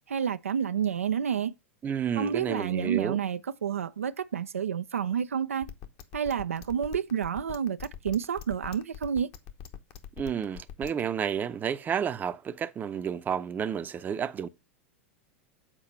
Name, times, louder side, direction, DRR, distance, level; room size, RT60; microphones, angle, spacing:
voice 1, 0.1-1.5 2.2-5.7 6.1-9.3, right 8 dB, 90° right, 0.4 m, -29 dB
voice 2, 1.8-3.2 10.2-14.5, right 8 dB, 25° right, 0.6 m, -31 dB
sound 1, 5.6-11.0, left 10 dB, 50° left, 1.0 m, -42 dB
7.5 x 4.2 x 5.1 m
hypercardioid pair, 100°, 7 cm